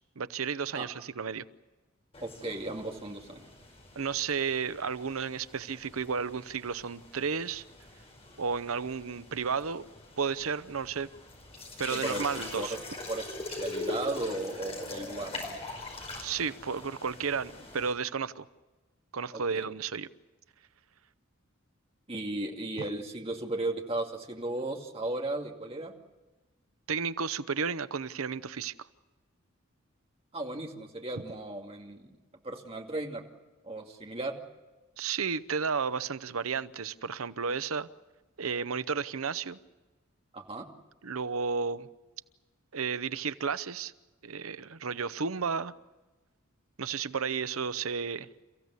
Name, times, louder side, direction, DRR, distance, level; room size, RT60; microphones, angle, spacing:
voice 1, 0.2-1.4 4.0-7.6 8.4-9.9 10.2-11.1 11.8-12.8 16.2-18.5 19.1-20.1 26.9-28.7 35.0-37.9 38.4-39.6 41.0-41.9 42.7-43.9 44.2-45.7 46.8-48.3, right 5 dB, 85° right, 0.8 m, -32 dB
sound 1, 2.1-17.9, left 2 dB, 30° left, 5.1 m, -43 dB
voice 2, 2.2-3.5 11.9-12.8 13.1-15.7 19.3-19.6 22.1-25.9 30.3-32.1 32.4-33.2 33.6-34.4 40.3-40.7, right 2 dB, 25° right, 2.4 m, -36 dB
30.0 x 15.5 x 8.3 m
head